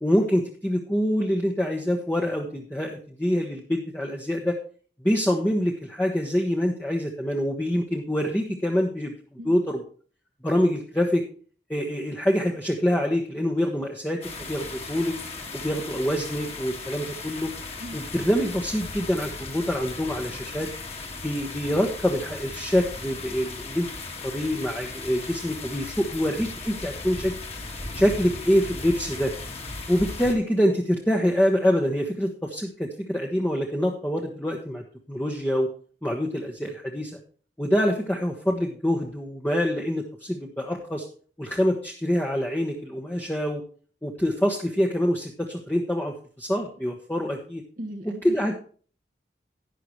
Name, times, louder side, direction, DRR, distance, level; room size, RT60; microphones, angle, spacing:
voice 1, 0.0-4.6 5.0-9.1 9.4-9.8 10.4-11.2 11.7-15.2 15.5-17.5 17.9-20.7 21.2-23.9 24.2-27.3 27.9-29.3 29.9-35.7 36.0-37.2 37.6-41.0 41.4-43.6 44.0-47.6 48.2-48.6, equal, 10° left, -1 dB, 1.1 m, -25 dB
sound 1, 14.2-30.3, left 3 dB, 35° left, 2.0 m, -37 dB
voice 2, 47.8-48.6, equal, 50° right, 2 dB, 1.0 m, -37 dB
11.5 x 10.0 x 3.1 m, 0.43 s
head